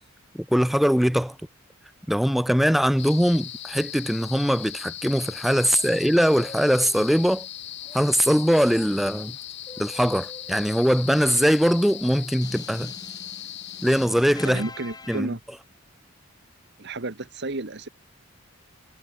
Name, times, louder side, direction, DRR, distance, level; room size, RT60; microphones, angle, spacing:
voice 1, 0.3-1.4 2.1-7.5 7.9-9.4 9.8-12.9 13.8-14.6 15.1-15.3, equal, ahead, 0.4 m, -21 dB
sound 1, 3.0-14.1, left 12 dB, 55° left, 1.1 m, -39 dB
sound 2, 6.2-7.4 7.8-15.2, left 2 dB, 20° left, 4.9 m, -45 dB
voice 2, 14.4-15.4 16.8-17.9, right 2 dB, 55° right, 1.4 m, -32 dB
head